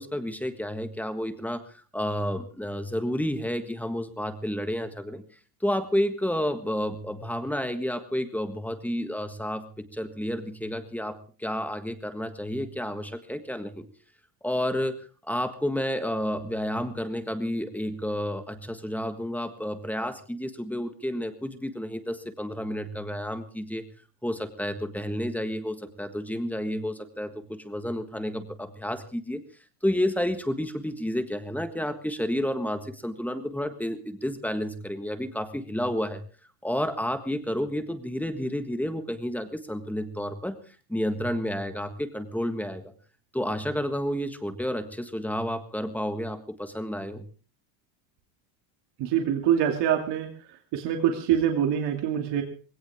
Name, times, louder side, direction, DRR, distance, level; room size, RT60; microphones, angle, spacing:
voice 1, 0.0-5.2 5.6-13.9 14.4-23.8 24.2-29.4 29.8-36.2 36.6-40.6 40.9-42.9 43.3-47.2, equal, 5° left, 8 dB, 1.5 m, -30 dB
voice 2, 49.0-50.3 50.7-52.4, right 9 dB, 55° right, 3 dB, 2.6 m, -24 dB
20.0 x 17.5 x 3.6 m, 0.37 s
cardioid pair, 140°, 49 cm